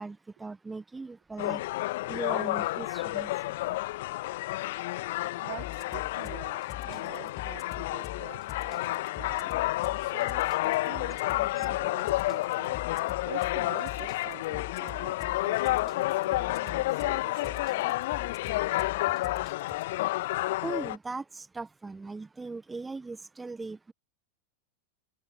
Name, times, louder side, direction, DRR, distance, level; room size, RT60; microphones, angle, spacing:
voice 1, 0.0-1.6 2.1-3.3 11.6-11.7 20.6-23.9, right 3 dB, 10° right, 1.4 m, -39 dB
sound 1, 1.4-21.0, left 18 dB, 50° left, 1.8 m, -30 dB
voice 2, 5.4-12.8 13.3-17.9, right 33 dB, 45° right, 4.6 m, -47 dB
sound 2, 5.6-19.8, left 12 dB, 30° left, 5.7 m, -43 dB
figure-of-eight pair, 90°, 0 cm